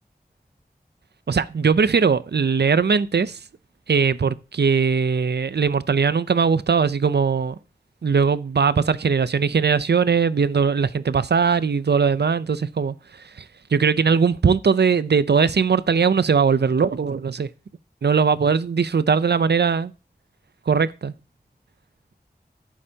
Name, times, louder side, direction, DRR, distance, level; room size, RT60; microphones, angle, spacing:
voice 1, 1.3-3.4 3.9-7.6 8.0-12.9 13.4-13.5 13.7-17.5 18.0-19.9 20.7-21.1, right 5 dB, 90° right, 0.5 m, -20 dB
11.0 x 8.7 x 2.8 m
wide cardioid pair, 50°, 17 cm